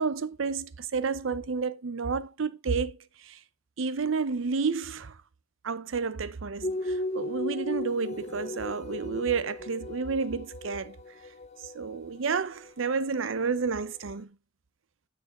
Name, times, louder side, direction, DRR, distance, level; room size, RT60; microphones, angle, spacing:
voice 1, 0.0-3.0 3.2-3.4 3.8-5.2 5.6-11.0 11.7-14.3, right 5 dB, 70° right, 0.6 m, -30 dB
sound 1, 6.6-14.1, left 1 dB, 35° left, 0.9 m, -37 dB
9.5 x 6.1 x 3.6 m
head